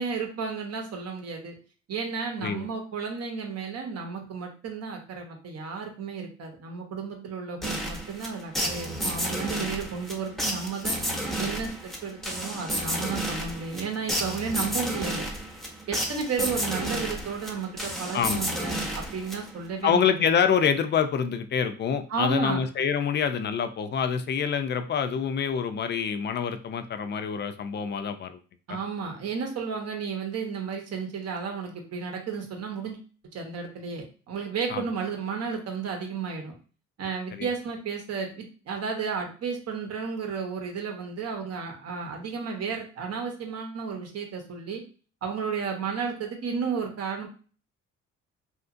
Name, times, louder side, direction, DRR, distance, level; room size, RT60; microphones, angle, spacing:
voice 1, 0.0-1.6 1.9-11.0 11.4-15.3 15.9-20.0 22.1-22.6 28.7-33.0 33.3-36.5 37.0-44.8 45.2-47.3, right 5 dB, 55° right, 3 dB, 0.9 m, -33 dB
sound 1, 7.6-19.7, equal, ahead, 0.7 m, -31 dB
voice 2, 19.8-28.4 28.7-28.8 34.7-34.9 37.3-37.5, left 7 dB, 35° left, 10 dB, 0.4 m, -26 dB
2.8 x 2.4 x 2.5 m, 0.38 s
cardioid pair, 90°, 30 cm